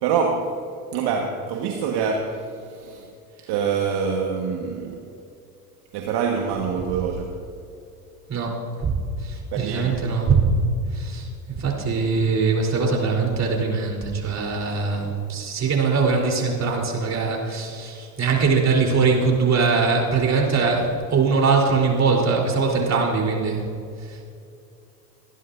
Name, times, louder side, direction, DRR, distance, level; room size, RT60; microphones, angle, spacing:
voice 1, 0.0-0.6 0.9-3.1 3.5-5.1 5.9-7.5 9.5-10.0, right 6 dB, 55° right, 1 dB, 1.6 m, -25 dB
voice 2, 8.3-8.9 9.2-10.4 10.9-23.6 24.0-24.2, right 4 dB, 35° right, 0 dB, 3.8 m, -22 dB
24.5 x 11.0 x 2.6 m, 2.6 s
hypercardioid pair, 85°, 47 cm